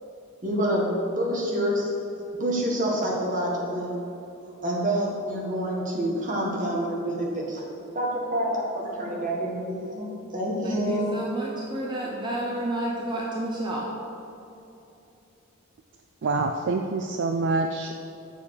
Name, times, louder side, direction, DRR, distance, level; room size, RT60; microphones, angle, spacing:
voice 1, 0.4-1.9 2.4-4.0 4.6-7.6 7.9-10.1 10.3-11.1, right 1 dB, 40° right, -2 dB, 1.5 m, -27 dB
voice 2, 10.6-13.9, right 1 dB, 20° right, -2 dB, 0.7 m, -30 dB
voice 3, 16.2-18.0, right 3 dB, 55° right, 4 dB, 0.4 m, -26 dB
7.1 x 6.6 x 4.8 m, 2.9 s
head